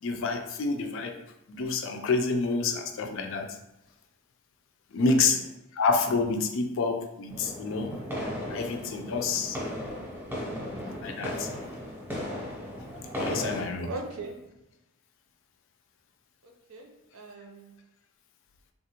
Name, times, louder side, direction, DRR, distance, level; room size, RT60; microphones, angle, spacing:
voice 1, 0.0-1.2 1.5-3.6 4.9-5.4 5.7-8.0 8.5-9.6 10.9-11.5 12.8-13.9, left 4 dB, 60° left, 5 dB, 0.4 m, -28 dB
voice 2, 5.0-5.4 12.7-12.9 13.8-14.4 16.4-17.7, right 2 dB, 85° right, 2 dB, 0.6 m, -41 dB
sound 1, 7.3-13.6, equal, 10° right, 0.8 m, -36 dB
3.4 x 2.5 x 2.8 m, 0.89 s
head